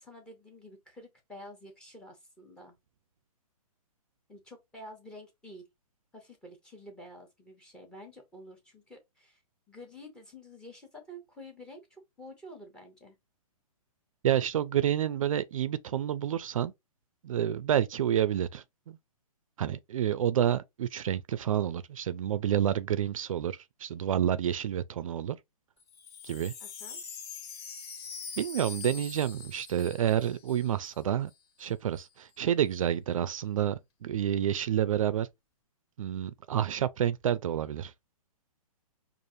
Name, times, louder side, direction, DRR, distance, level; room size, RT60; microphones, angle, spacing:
voice 1, 0.0-2.8 4.3-5.6 6.1-9.4 9.7-13.2 26.6-27.0, equal, 5° left, 0.7 m, -49 dB
voice 2, 14.2-16.7 17.2-19.0 19.6-25.4 26.2-26.5 28.4-31.3 31.6-35.3 36.0-37.9, right 10 dB, 60° right, 0.4 m, -29 dB
Wind chime, 25.8-31.0 31.3-31.4 31.6-32.0, left 5 dB, 40° left, 1.3 m, -44 dB
4.9 x 2.5 x 2.6 m
hypercardioid pair, 160°, 19 cm